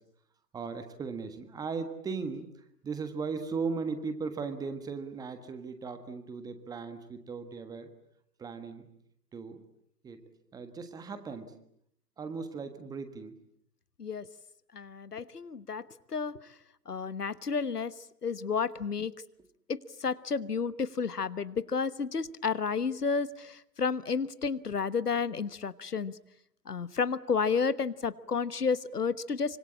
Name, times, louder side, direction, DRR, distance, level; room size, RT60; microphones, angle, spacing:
voice 1, 0.5-2.5 2.8-7.9 8.4-8.9 9.3-9.6 10.0-10.2 10.5-11.5 12.2-13.4, right 5 dB, 10° right, 9 dB, 1.5 m, -37 dB
voice 2, 14.7-15.8 16.1-16.3 16.9-17.9 18.2-19.1 19.7-26.1 26.7-29.6, left 5 dB, 70° left, 16 dB, 1.3 m, -31 dB
25.5 x 25.5 x 8.7 m, 0.72 s
figure-of-eight pair, 125°, 48 cm